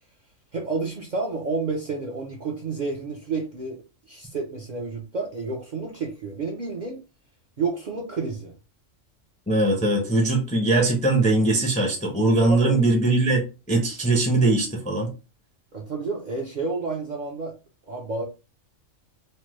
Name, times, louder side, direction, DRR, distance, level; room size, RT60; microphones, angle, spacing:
voice 1, 0.5-7.0 7.6-8.5 12.5-12.8 15.7-17.5 17.9-18.2, right 4 dB, 50° right, -1 dB, 0.5 m, -30 dB
voice 2, 9.5-13.4 13.7-15.1, right 2 dB, 10° left, 0 dB, 0.4 m, -21 dB
3.2 x 2.1 x 3.0 m, 0.31 s
omnidirectional pair, 1.3 m